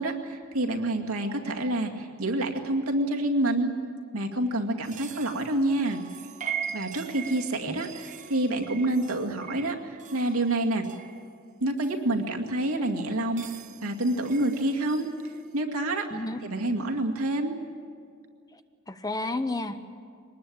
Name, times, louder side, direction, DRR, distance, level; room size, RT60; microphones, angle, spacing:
voice 1, 0.0-3.7 4.1-6.0 6.7-10.8 11.6-13.5 13.8-15.1 15.5-16.1 16.4-17.6, right 1 dB, 75° right, 2 dB, 2.2 m, -27 dB
sound 1, 4.8-12.0 12.6-15.5, right 7 dB, 35° right, 1.0 m, -41 dB
voice 2, 16.1-16.4 18.5-18.6 18.9-19.8, left 2 dB, 15° left, 9 dB, 0.8 m, -31 dB
23.5 x 20.0 x 8.7 m, 2.2 s
head